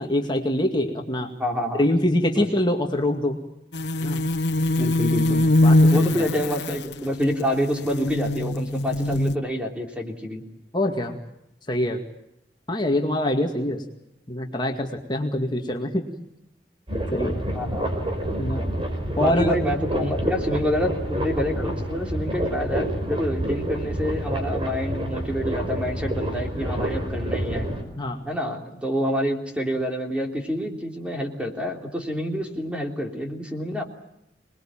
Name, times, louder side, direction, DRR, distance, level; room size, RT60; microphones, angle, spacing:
voice 1, 0.0-1.3 1.8-3.4 4.0-4.2 5.6-6.3 10.7-11.2 11.7-12.0 12.7-13.8 14.3-16.0 17.1-17.4 18.4-18.7 19.2-19.6 28.0-28.2, left 1 dB, 25° left, 2 dB, 2.2 m, -24 dB
voice 2, 1.4-1.8 2.3-2.5 4.8-5.4 5.9-10.4 17.5-18.0 19.1-27.7 28.2-33.8, equal, 5° right, 2 dB, 3.2 m, -27 dB
sound 1, 3.7-9.4, left 1 dB, 75° left, 1.0 m, -22 dB
toxic area, 16.9-27.8, right 1 dB, 30° right, 5.1 m, -28 dB
27.0 x 21.0 x 8.9 m, 0.84 s
head